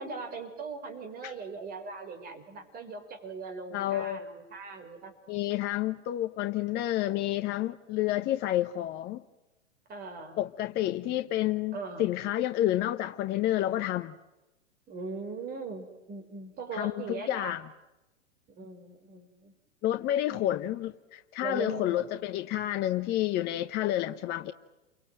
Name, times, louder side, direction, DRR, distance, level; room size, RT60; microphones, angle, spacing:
voice 1, 0.0-5.1 9.9-10.4 10.7-11.2 11.7-12.1 14.9-17.6 18.5-19.5 20.3-20.5 21.4-22.1, right 4 dB, 25° right, 6 dB, 5.5 m, -40 dB
voice 2, 3.7-4.3 5.3-9.2 10.4-14.2 16.7-17.6 19.8-24.5, left 13 dB, 25° left, 8 dB, 0.9 m, -29 dB
29.0 x 24.0 x 7.7 m, 1.0 s
hypercardioid pair, 120°, 36 cm